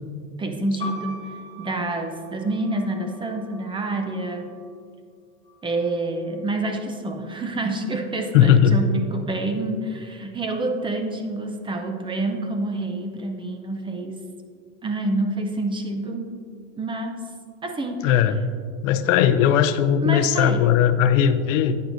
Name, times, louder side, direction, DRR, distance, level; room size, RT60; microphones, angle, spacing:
voice 1, 0.4-4.5 5.6-14.2 14.8-16.3 16.8-17.2 17.6-18.2 20.0-20.7, right 2 dB, 15° right, 4 dB, 0.6 m, -27 dB
sound 1, 0.8-4.6 5.5-6.2, left 1 dB, 15° left, 1.1 m, -41 dB
voice 2, 8.3-8.8 18.0-18.4 18.8-21.8, left 9 dB, 75° left, 11 dB, 0.7 m, -18 dB
9.7 x 9.1 x 2.6 m, 2.2 s
supercardioid pair, 135°, 39 cm